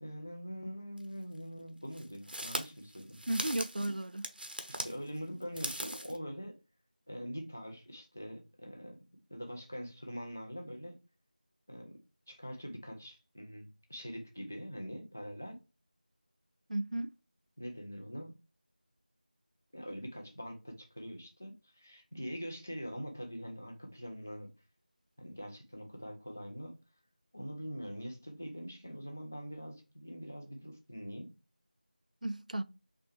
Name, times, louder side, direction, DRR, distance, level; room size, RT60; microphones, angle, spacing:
voice 1, 0.0-3.2 4.7-6.6 7.1-9.0 9.3-11.0 11.7-12.0 12.3-15.6 17.6-18.4 19.7-24.5 25.2-26.8 27.3-31.3, equal, 15° left, 0.4 m, -43 dB
sound 1, 1.0-1.1 1.9-4.9 5.4-6.2, right 1 dB, 85° right, 1.0 m, -39 dB
voice 2, 3.3-4.3 16.7-17.1 32.2-32.6, right 1 dB, 50° right, 0.4 m, -34 dB
4.2 x 3.3 x 3.1 m
figure-of-eight pair, 175°, 5 cm